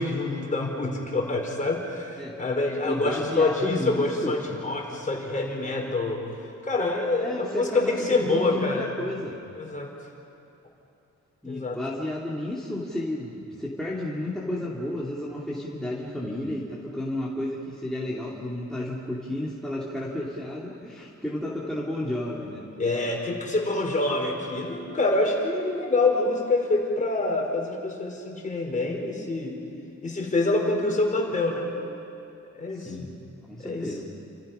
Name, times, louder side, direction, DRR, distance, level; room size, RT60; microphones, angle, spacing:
voice 1, 0.0-6.2 6.6-8.9 9.6-9.9 11.4-11.8 22.8-29.6 30.0-31.7 32.5-33.1 33.6-33.9, left 2 dB, 25° left, 0 dB, 4.7 m, -26 dB
voice 2, 2.8-4.4 7.2-9.3 11.4-22.6 32.7-33.1 33.5-34.0, left 1 dB, ahead, -6 dB, 2.7 m, -32 dB
30.0 x 27.5 x 5.7 m, 2.7 s
wide cardioid pair, 155°, 30 cm